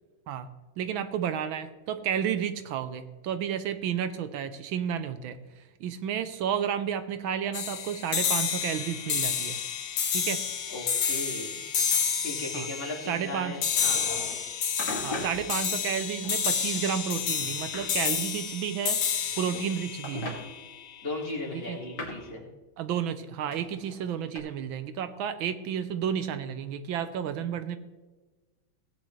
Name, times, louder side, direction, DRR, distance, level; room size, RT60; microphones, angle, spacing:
voice 1, 0.8-9.6 10.1-10.4 12.5-12.7 13.1-13.5 15.0-19.0 19.4-20.4 21.5-21.8 22.8-27.8, right 8 dB, 75° right, 10 dB, 1.4 m, -31 dB
sound 1, 7.5-21.0, left 7 dB, 80° left, 2.0 m, -30 dB
voice 2, 10.7-11.6 12.2-14.0 21.0-22.4, left 2 dB, 30° left, -2 dB, 2.4 m, -36 dB
sound 2, 13.6-14.4 14.8-15.4 16.2-16.9 17.2-17.9 19.1-19.7 20.0-20.4 21.2-22.3 23.5-24.4, left 2 dB, 50° left, 2.7 m, -38 dB
17.0 x 9.2 x 3.1 m, 1.2 s
omnidirectional pair, 2.3 m